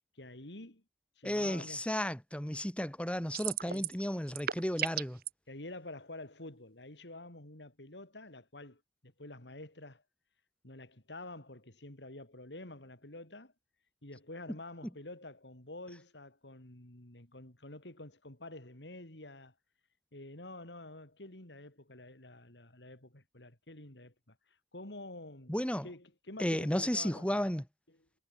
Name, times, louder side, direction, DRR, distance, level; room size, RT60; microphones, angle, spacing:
voice 1, 0.1-0.8 1.2-1.8 3.7-3.9 5.5-10.0 10.6-13.5 14.0-19.5 20.1-24.4 24.7-27.5, left 2 dB, 85° left, 4.2 m, -48 dB
voice 2, 1.2-5.2 25.5-25.9 26.4-27.6, equal, 5° left, 2.0 m, -33 dB
sound 1, 3.3-4.0 4.3-5.3, right 10 dB, 55° right, 1.4 m, -34 dB
head